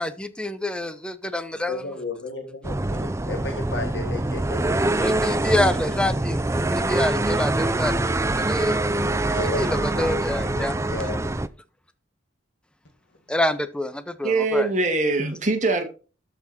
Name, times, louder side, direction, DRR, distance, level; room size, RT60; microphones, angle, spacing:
voice 1, 0.0-1.8 5.0-8.8 9.6-10.8 13.3-14.7, left 1 dB, 5° left, 11 dB, 0.8 m, -27 dB
voice 2, 1.7-4.9 5.4-5.7 9.3-10.0 10.5-11.2, left 2 dB, 75° left, 2 dB, 2.1 m, -34 dB
sound 1, 2.6-11.5, right 2 dB, 15° right, 0.5 m, -24 dB
voice 3, 14.2-15.9, right 3 dB, 40° right, 5 dB, 2.1 m, -22 dB
12.5 x 6.1 x 4.3 m, 0.35 s
head